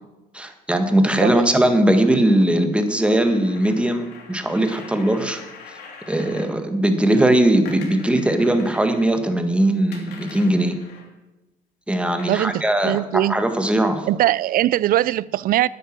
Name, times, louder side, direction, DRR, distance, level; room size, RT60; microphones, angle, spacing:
voice 1, 0.3-5.4 6.1-10.8 11.9-14.1, right 1 dB, 5° right, 1.6 m, -19 dB
sound 1, 3.1-6.5 7.7-9.1 9.9-11.1 12.2-12.4 13.3-13.4, left 5 dB, 75° left, 3.0 m, -43 dB
voice 2, 12.3-13.4 14.1-15.7, right 14 dB, 60° right, 0.4 m, -21 dB
10.0 x 9.5 x 7.5 m
cardioid pair, 110°, 17 cm